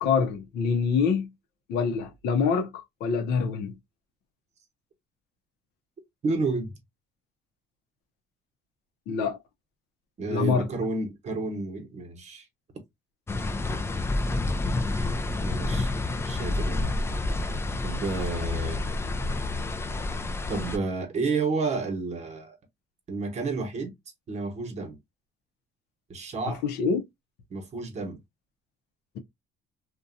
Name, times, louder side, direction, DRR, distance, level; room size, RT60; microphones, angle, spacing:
voice 1, 0.0-1.3 1.7-3.7 9.1-9.4 10.3-10.7 26.5-27.0, left 5 dB, 80° left, 0.6 m, -25 dB
voice 2, 6.2-6.8 10.2-12.4 14.9-16.8 17.8-18.9 20.5-22.6 23.1-23.9 24.3-25.0 26.1-26.6 27.5-28.2, right 3 dB, 40° right, 1.0 m, -31 dB
sound 1, 13.3-20.8, left 2 dB, 15° left, 0.4 m, -29 dB
2.7 x 2.2 x 2.5 m
cardioid pair, 110°, 17 cm